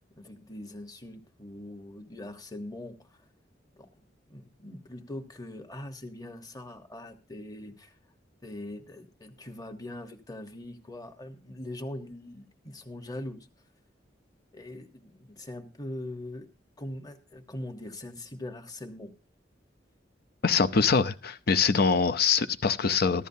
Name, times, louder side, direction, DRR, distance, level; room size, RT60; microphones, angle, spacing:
voice 1, 0.2-3.2 3.8-3.9 4.3-7.9 8.4-13.5 14.5-16.5 16.8-19.1, left 1 dB, 20° left, 1.2 m, -41 dB
voice 2, 20.4-23.3, left 5 dB, 55° left, 0.7 m, -24 dB
14.5 x 12.5 x 2.8 m
head